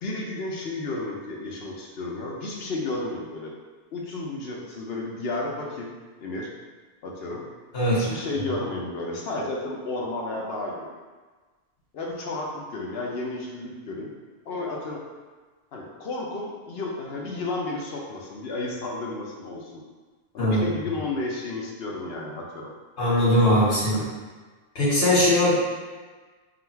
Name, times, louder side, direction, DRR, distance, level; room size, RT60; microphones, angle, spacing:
voice 1, 0.0-3.5 3.9-5.9 6.2-6.5 7.0-7.4 7.9-10.9 11.9-14.1 14.5-15.0 15.7-19.8 20.3-22.7 23.9-24.1, left 2 dB, 65° left, -1 dB, 0.9 m, -32 dB
voice 2, 23.0-24.0 24.8-25.5, left 1 dB, 85° left, -9 dB, 1.9 m, -20 dB
3.8 x 2.4 x 4.4 m, 1.4 s
omnidirectional pair, 1.1 m